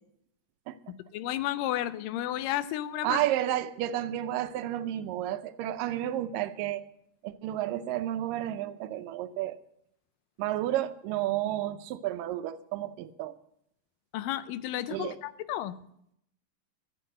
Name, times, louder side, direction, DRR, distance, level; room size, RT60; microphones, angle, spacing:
voice 1, 1.1-3.2 14.1-15.7, left 13 dB, 85° left, 15 dB, 2.3 m, -32 dB
voice 2, 3.0-6.9 7.2-9.6 10.4-13.4 14.9-15.2, right 13 dB, 85° right, 11 dB, 2.4 m, -31 dB
13.5 x 8.3 x 7.7 m, 0.75 s
omnidirectional pair, 3.8 m